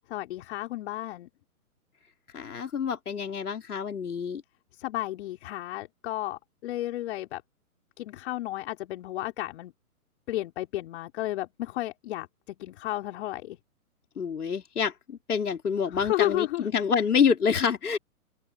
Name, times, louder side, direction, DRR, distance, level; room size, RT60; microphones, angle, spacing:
voice 1, 0.1-1.3 4.7-7.4 8.0-9.7 10.3-13.6 15.9-16.7, left 15 dB, 45° left, 4.2 m, -33 dB
voice 2, 2.3-4.4 14.2-18.0, left 6 dB, 80° left, 4.0 m, -27 dB
open air
hypercardioid pair, 135°, 45 cm